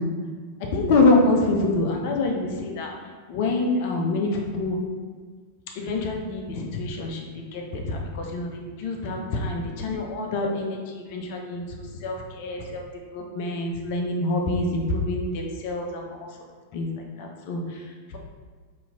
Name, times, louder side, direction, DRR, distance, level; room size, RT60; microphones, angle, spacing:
voice 1, 0.7-2.9 3.3-4.8 5.8-7.2 7.5-10.8 11.1-11.6 12.0-12.8 13.1-16.0 16.7-16.9 17.2-17.6, left 2 dB, 50° left, 1 dB, 0.6 m, -25 dB
2.9 x 2.7 x 3.8 m, 1.5 s
figure-of-eight pair, 90°, 0 cm